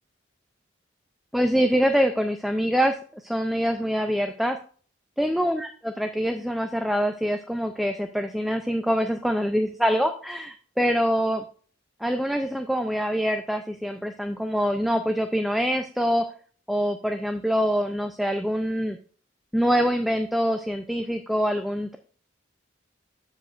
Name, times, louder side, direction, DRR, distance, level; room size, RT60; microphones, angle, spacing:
voice 1, 1.3-4.6 5.2-11.4 12.0-16.2 16.7-19.0 19.5-22.0, equal, ahead, 6 dB, 0.3 m, -25 dB
13.5 x 4.9 x 2.4 m, 0.42 s
head